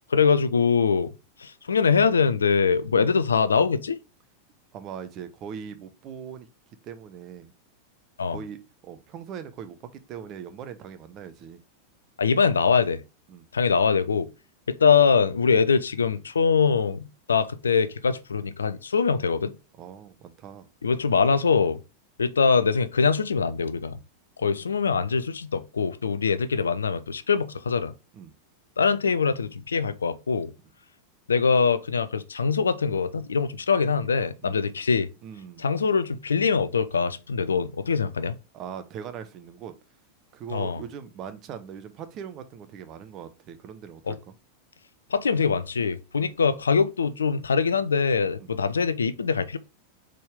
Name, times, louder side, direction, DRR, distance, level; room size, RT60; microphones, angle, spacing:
voice 1, 0.1-1.1 1.4-4.0 8.2-8.4 12.2-13.0 13.5-14.3 14.7-19.5 20.8-21.8 22.2-24.0 24.4-27.9 28.8-30.5 31.3-35.1 35.6-38.4 40.5-40.8 44.1-44.2 45.1-49.6, left 5 dB, 70° left, 0.4 m, -23 dB
voice 2, 4.7-6.5 6.8-7.5 8.3-8.6 8.8-11.6 13.3-13.5 19.8-20.7 24.4-24.5 28.1-28.3 34.4-34.6 35.2-35.7 38.5-39.7 40.3-44.3 46.2-46.3 48.4-48.5, right 8 dB, 35° right, 0.7 m, -40 dB
4.2 x 3.7 x 3.3 m
figure-of-eight pair, 90°, 0 cm